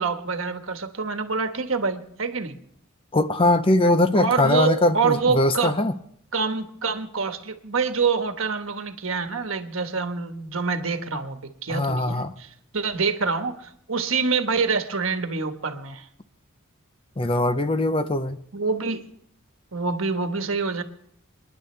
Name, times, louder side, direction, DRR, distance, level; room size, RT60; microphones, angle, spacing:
voice 1, 0.0-2.6 4.1-5.7 6.3-16.1 18.5-19.1 19.7-20.8, right 5 dB, 70° right, 7 dB, 1.3 m, -26 dB
voice 2, 3.1-5.9 11.7-12.3 17.2-18.4, left 1 dB, 25° left, 11 dB, 0.6 m, -21 dB
29.0 x 10.5 x 3.3 m, 0.71 s
head